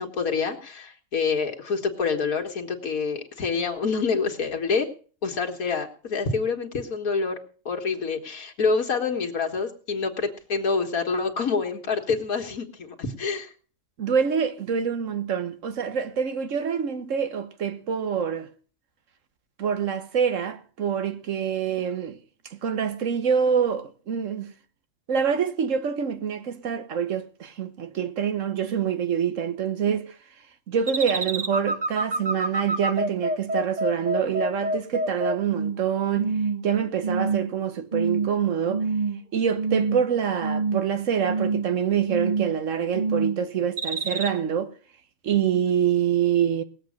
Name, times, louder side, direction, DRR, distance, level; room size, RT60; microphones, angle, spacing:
voice 1, 0.0-4.9 5.2-7.4 7.7-13.5, left 5 dB, 80° left, 2.0 m, -27 dB
voice 2, 14.0-18.5 19.6-22.2 22.5-24.5 25.1-30.1 30.7-36.4 36.6-38.9 39.3-44.7 45.2-46.6, right 7 dB, 60° right, 1.5 m, -26 dB
sound 1, 30.9-35.8 36.2-36.6 37.0-37.5 37.9-38.3 38.7-39.2 39.6-40.1 40.4-40.9 41.2-41.7 42.1-42.6 42.9-43.4 43.8-44.3, right 3 dB, 35° right, 1.0 m, -26 dB
19.0 x 7.7 x 6.4 m
omnidirectional pair, 1.5 m